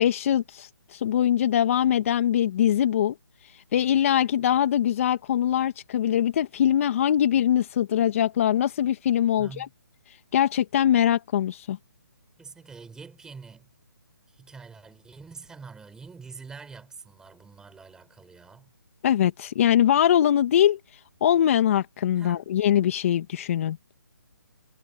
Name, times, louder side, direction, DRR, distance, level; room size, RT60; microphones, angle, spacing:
voice 1, 0.0-3.2 3.7-9.7 10.3-11.8 19.0-20.8 21.2-23.8, left 10 dB, 40° left, 1.9 m, -22 dB
voice 2, 9.4-9.7 12.4-13.7 14.3-18.7 22.2-22.4, right 5 dB, 5° right, 6.8 m, -45 dB
hypercardioid pair, 155°, 11 cm